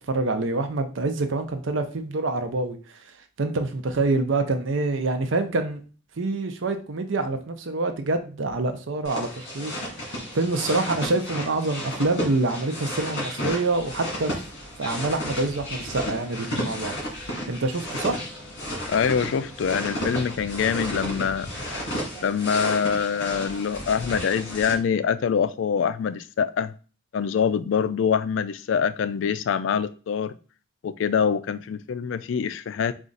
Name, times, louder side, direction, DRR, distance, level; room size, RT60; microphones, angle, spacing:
voice 1, 0.1-2.8 3.4-5.8 6.2-9.7 10.0-14.3 14.8-18.2, right 2 dB, 80° right, 0.6 m, -26 dB
sound 1, 9.0-24.7, equal, 60° left, 2.0 m, -33 dB
voice 2, 18.9-21.8 22.2-26.7 27.1-30.3 30.8-32.9, left 7 dB, 80° left, 0.3 m, -25 dB
4.2 x 2.4 x 3.9 m
head